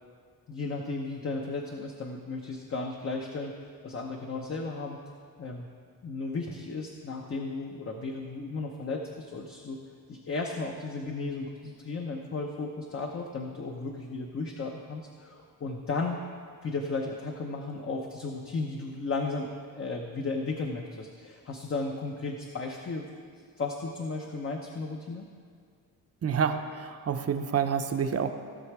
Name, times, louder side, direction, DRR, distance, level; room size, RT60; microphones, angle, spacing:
voice 1, 0.5-5.0 5.4-5.7 6.0-9.8 10.1-16.2 16.6-23.1 23.6-25.3, left 3 dB, 35° left, 2 dB, 0.9 m, -35 dB
voice 2, 26.2-28.3, right 7 dB, 40° right, 7 dB, 0.8 m, -28 dB
16.5 x 6.4 x 4.8 m, 2.1 s
cardioid pair, 110°, 37 cm